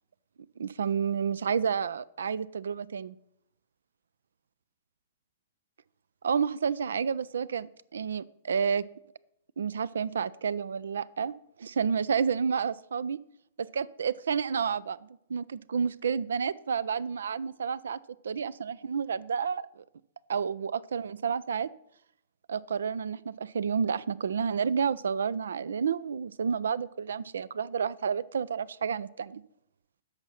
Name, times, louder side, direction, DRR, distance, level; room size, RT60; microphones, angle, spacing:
voice 1, 0.6-3.2 6.2-8.8 9.6-11.3 11.6-13.2 13.6-18.0 18.2-19.8 20.3-21.7 22.5-29.4, right 6 dB, 70° right, 21 dB, 0.4 m, -30 dB
10.5 x 6.4 x 5.7 m, 0.76 s
figure-of-eight pair, 110°, 0 cm